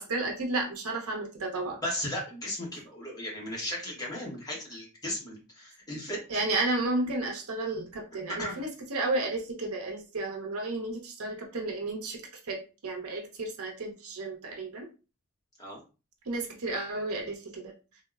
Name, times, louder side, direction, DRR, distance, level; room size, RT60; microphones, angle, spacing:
voice 1, 0.0-1.8 6.3-14.9 16.3-17.7, right 2 dB, 80° right, 0 dB, 0.8 m, -32 dB
voice 2, 1.8-6.2 8.4-8.7 15.6-15.8, left 1 dB, 15° left, -3 dB, 1.0 m, -36 dB
3.5 x 2.1 x 2.3 m, 0.32 s
head